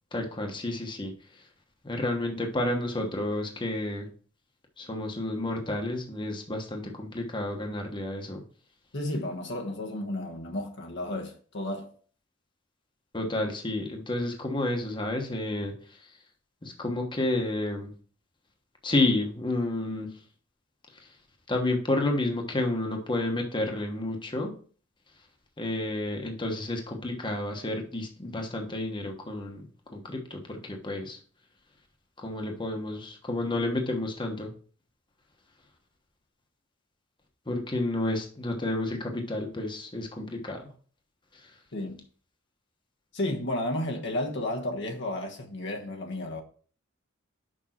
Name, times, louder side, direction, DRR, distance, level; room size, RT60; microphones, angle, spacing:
voice 1, 0.1-1.1 1.8-4.1 4.8-8.4 13.1-15.7 16.6-17.9 18.8-20.1 21.5-24.5 25.6-29.6 29.9-31.2 32.2-34.5 37.5-40.6, left 2 dB, 25° left, 1.2 m, -30 dB
voice 2, 8.9-11.9 41.7-42.0 43.1-46.4, left 1 dB, 60° left, 1.2 m, -32 dB
6.3 x 5.4 x 4.4 m
head